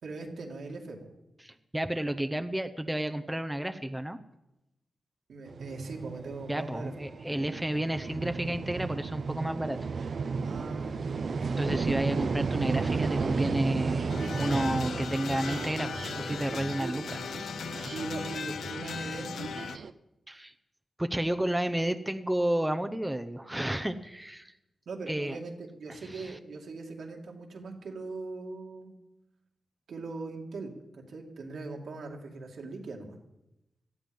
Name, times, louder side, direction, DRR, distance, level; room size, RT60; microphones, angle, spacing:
voice 1, 0.0-1.1 5.3-6.9 10.4-11.7 17.9-19.3 24.9-29.0 29.9-33.2, right 3 dB, 80° right, 1 dB, 2.5 m, -40 dB
voice 2, 1.4-4.2 6.5-9.8 11.6-17.2 20.3-20.5 21.0-24.5 25.1-25.4 26.0-26.4, right 1 dB, 10° right, 9 dB, 0.9 m, -31 dB
sound 1, 5.5-19.9, right 5 dB, 65° right, 0.8 m, -34 dB
sound 2, 14.1-19.8, left 7 dB, 85° left, 0.4 m, -38 dB
18.0 x 13.0 x 5.4 m, 0.92 s
cardioid pair, 75°, 0 cm